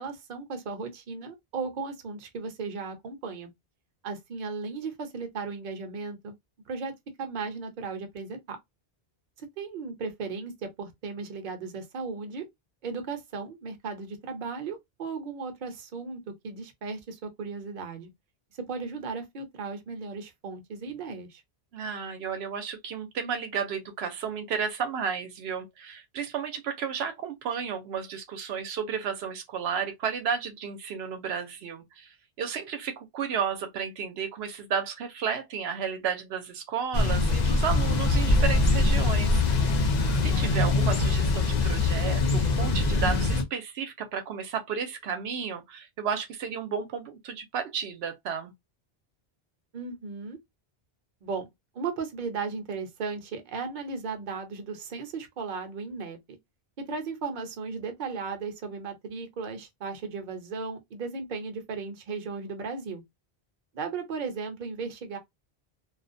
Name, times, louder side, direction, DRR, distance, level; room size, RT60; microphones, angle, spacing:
voice 1, 0.0-3.5 4.0-6.3 6.7-8.6 9.4-12.5 12.8-18.1 18.5-21.4 49.7-50.4 51.2-51.5 51.7-56.4 56.8-63.0 63.7-65.2, right 4 dB, 55° right, 0.8 m, -36 dB
voice 2, 21.7-32.1 32.4-39.8 40.1-48.5, right 7 dB, 85° right, 0.8 m, -33 dB
Thunder / Bicycle, 36.9-43.4, left 3 dB, 50° left, 0.6 m, -23 dB
2.3 x 2.1 x 2.5 m
omnidirectional pair, 1.0 m